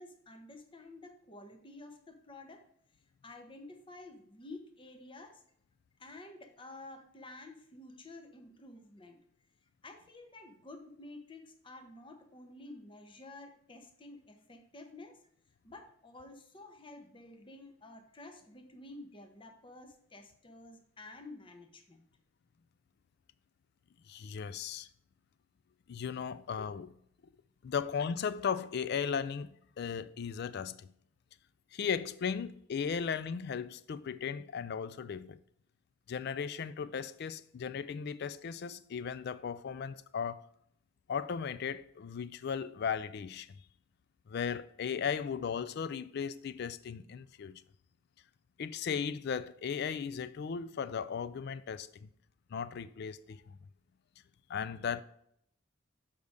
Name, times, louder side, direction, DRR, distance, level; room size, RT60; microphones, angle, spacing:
voice 1, 0.0-2.6 3.2-5.4 6.0-9.2 9.8-15.2 15.6-22.1, left 2 dB, 25° left, 0.7 m, -51 dB
voice 2, 24.1-24.9 25.9-26.9 27.6-30.9 31.7-35.4 36.1-40.5 41.1-43.5 44.3-47.6 48.6-52.1 52.5-53.6 54.5-55.0, left 6 dB, 55° left, 0.3 m, -36 dB
6.6 x 5.2 x 3.5 m
head